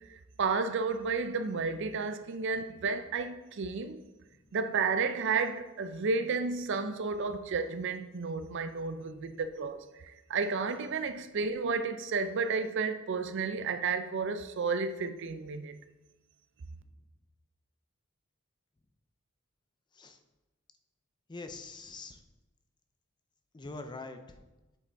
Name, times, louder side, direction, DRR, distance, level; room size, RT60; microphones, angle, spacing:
voice 1, 0.4-4.0 4.5-9.9 10.3-15.8, right 4 dB, 60° right, 0.5 m, -32 dB
voice 2, 21.3-22.2 23.5-24.5, left 3 dB, 20° left, 0.4 m, -44 dB
8.0 x 4.9 x 3.4 m
head